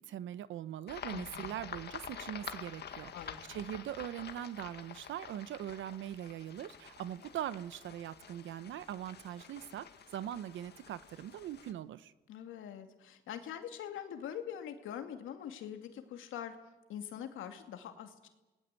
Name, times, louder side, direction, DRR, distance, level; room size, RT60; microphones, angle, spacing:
voice 1, 0.1-9.9 10.1-12.1, right 11 dB, 75° right, 15 dB, 1.0 m, -41 dB
sound 1, 0.9-11.7, left 7 dB, 55° left, 2.0 m, -48 dB
voice 2, 1.1-1.5 3.1-3.4 12.3-16.6 16.9-18.3, left 9 dB, 85° left, 6 dB, 2.6 m, -43 dB
29.0 x 19.0 x 8.4 m, 1.1 s
cardioid pair, 90°, 20 cm